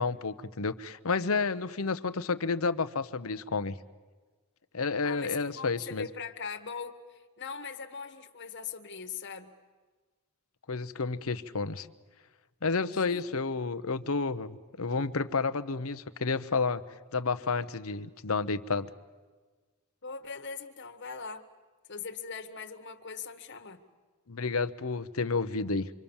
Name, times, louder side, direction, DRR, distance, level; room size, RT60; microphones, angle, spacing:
voice 1, 0.0-3.7 4.7-6.1 10.7-11.9 12.6-16.8 17.1-18.9 24.3-25.9, left 4 dB, 70° left, 0.9 m, -30 dB
voice 2, 5.0-9.5 13.1-13.2 20.0-21.5 21.9-23.8, left 6 dB, 55° left, 1.6 m, -41 dB
26.5 x 24.0 x 7.2 m
head